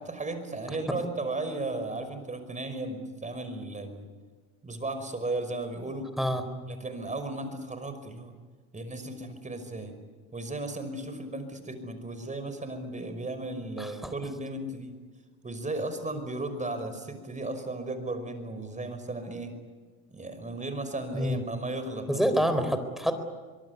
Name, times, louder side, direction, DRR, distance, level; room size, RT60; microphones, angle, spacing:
voice 1, 0.0-4.1 4.6-6.1 6.7-8.3 8.7-10.0 10.3-15.0 15.4-19.5 20.1-22.4, right 2 dB, 15° right, 9 dB, 5.5 m, -35 dB
voice 2, 13.8-14.1 21.1-21.4 22.1-23.2, equal, ahead, 9 dB, 4.2 m, -27 dB
24.5 x 22.5 x 9.6 m, 1.4 s
hypercardioid pair, 90°, 42 cm